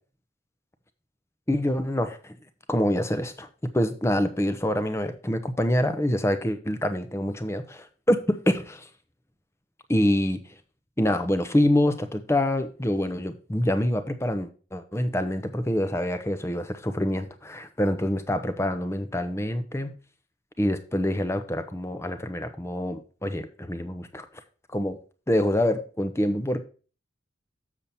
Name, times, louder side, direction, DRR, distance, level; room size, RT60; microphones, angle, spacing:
voice 1, 1.5-2.3 2.7-3.5 3.7-8.9 9.9-10.4 11.0-19.9 20.6-24.2 24.7-25.0 25.3-26.6, left 1 dB, 15° left, 9 dB, 0.8 m, -26 dB
7.2 x 6.9 x 4.2 m, 0.37 s
head